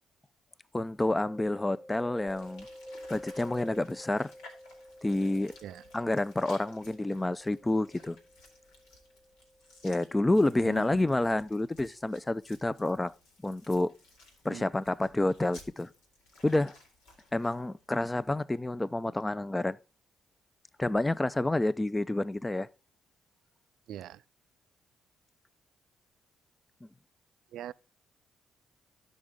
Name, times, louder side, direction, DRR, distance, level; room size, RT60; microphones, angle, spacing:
voice 1, 0.7-2.7 3.1-4.3 5.0-5.5 5.9-8.2 9.8-13.1 13.4-13.9 14.4-15.9 16.4-16.8 17.3-19.8 20.8-22.7, left 2 dB, 20° left, 0.4 m, -29 dB
Mallet percussion, 1.1-10.7, equal, ahead, 1.1 m, -50 dB
sound 1, 2.3-18.3, left 2 dB, 85° left, 2.0 m, -57 dB
voice 2, 10.6-11.0 14.5-14.7 23.9-24.2 27.5-27.7, right 11 dB, 75° right, 0.3 m, -42 dB
12.5 x 5.2 x 3.6 m
hypercardioid pair, 50°, 0 cm